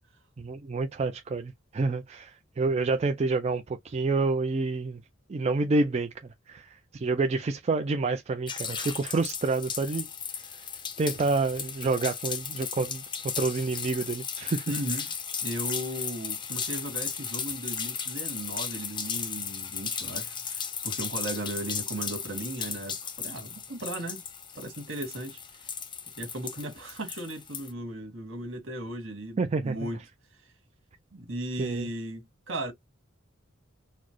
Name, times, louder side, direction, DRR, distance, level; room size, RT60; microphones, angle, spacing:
voice 1, 0.4-5.0 5.3-6.1 6.5-10.1 10.3-10.6 11.0-13.0 13.4-14.7 29.4-29.8 31.6-31.9, right 3 dB, 30° right, 0.4 m, -28 dB
sound 1, 8.5-27.7, left 7 dB, 25° left, 0.5 m, -35 dB
voice 2, 14.7-15.1 15.4-24.2 24.5-25.4 26.2-30.0 31.1-32.7, right 1 dB, 65° right, 1.7 m, -36 dB
4.2 x 2.0 x 3.0 m
head